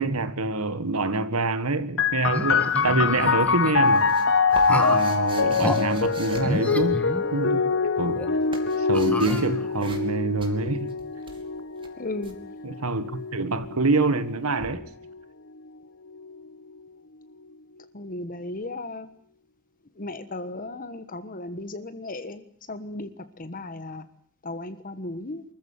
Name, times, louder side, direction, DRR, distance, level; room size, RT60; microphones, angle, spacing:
voice 1, 0.0-4.1 4.7-7.0 7.3-8.4 8.8-11.0 12.6-14.8, right 3 dB, 85° right, 1.7 m, -26 dB
sound 1, 2.0-15.2 16.1-16.8, left 5 dB, 60° left, 1.2 m, -25 dB
sound 2, 2.3-3.7 4.7-5.1 5.6-5.8 6.4-7.7 8.1-8.3 8.9-9.9, left 1 dB, 5° left, 1.8 m, -30 dB
sound 3, 3.4-7.2 8.0-9.5 9.8-10.1 10.4-12.4 14.6-14.7, right 3 dB, 25° right, 3.0 m, -43 dB
voice 2, 12.0-12.4 17.9-19.1 20.0-24.0 24.4-25.4, left 2 dB, 40° left, 1.3 m, -35 dB
24.5 x 14.5 x 9.8 m
head